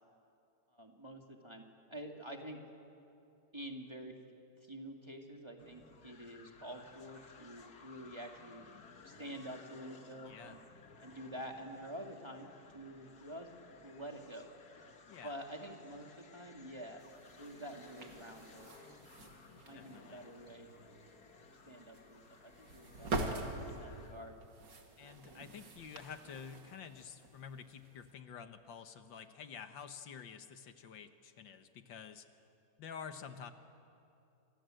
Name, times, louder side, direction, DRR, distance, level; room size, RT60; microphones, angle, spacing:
voice 1, 0.7-1.6 1.9-2.6 3.5-4.1 4.7-8.6 9.0-10.6 11.0-13.5 13.8-14.5 15.2-17.0 17.4-18.8 19.6-21.1 21.7-24.3, equal, 15° right, 2 dB, 2.3 m, -48 dB
sound 1, 5.6-24.2, left 4 dB, 55° left, 2.1 m, -59 dB
voice 2, 15.1-15.4 19.7-20.2 25.0-32.3 32.8-33.5, left 7 dB, 85° left, 8 dB, 2.0 m, -49 dB
sound 2, 17.0-28.1, right 2 dB, 75° right, 2.9 m, -45 dB
28.0 x 27.0 x 7.8 m, 2.7 s
omnidirectional pair, 2.0 m